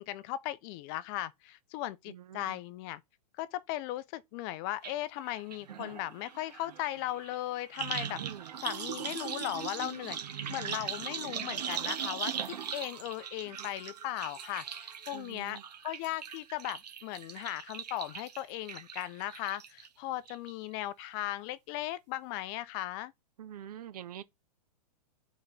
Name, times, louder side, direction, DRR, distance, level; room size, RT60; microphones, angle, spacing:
voice 1, 0.0-3.0 3.4-8.2 8.6-23.1, left 15 dB, 35° left, 0.5 m, -37 dB
voice 2, 2.1-2.6 8.2-8.5 15.1-15.6 23.4-24.2, right 10 dB, 70° right, 1.0 m, -46 dB
sound 1, 4.8-4.9 5.2-19.9 20.3-20.7 21.0-21.1, right 8 dB, 90° right, 1.4 m, -40 dB
8.5 x 4.0 x 4.0 m
hypercardioid pair, 140°, 20 cm